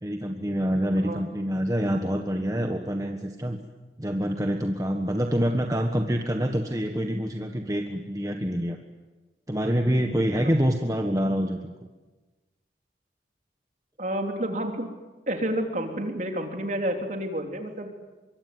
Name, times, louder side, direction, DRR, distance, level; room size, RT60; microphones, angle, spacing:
voice 1, 0.0-3.6 4.0-8.8 9.5-11.9, equal, 20° right, 3 dB, 1.4 m, -26 dB
voice 2, 14.0-14.9 15.3-17.9, right 1 dB, 45° right, 3 dB, 3.5 m, -29 dB
25.0 x 23.5 x 9.5 m, 1.2 s
head